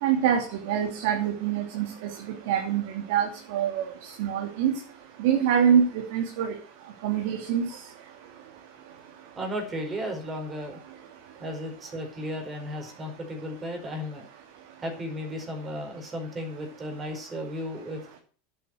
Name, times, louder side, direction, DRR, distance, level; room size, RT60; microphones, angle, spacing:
voice 1, 0.0-1.9 2.5-2.8 3.1-3.8 4.2-4.7 5.2-6.5 7.0-7.7, right 8 dB, 65° right, 3 dB, 3.1 m, -24 dB
voice 2, 9.3-10.8 11.4-14.3 14.8-18.2, equal, 20° right, 4 dB, 4.9 m, -34 dB
10.5 x 9.2 x 7.9 m, 0.39 s
supercardioid pair, 145°, 0 cm